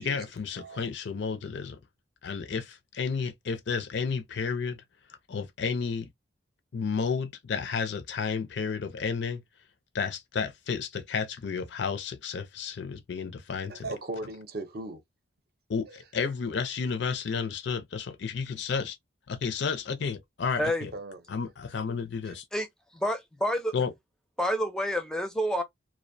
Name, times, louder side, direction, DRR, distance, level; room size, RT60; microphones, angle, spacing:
voice 1, 0.0-1.8 2.2-4.8 5.3-6.1 6.7-9.4 9.9-13.9 15.7-19.0 19.3-20.9 21.3-22.4 23.7-23.9, left 5 dB, 60° left, 0.4 m, -32 dB
voice 2, 13.7-15.0 20.9-21.2 22.2-22.4, right 2 dB, 50° right, 0.6 m, -38 dB
voice 3, 22.9-23.7 24.4-25.6, equal, 5° left, 0.4 m, -28 dB
2.4 x 2.1 x 2.6 m
head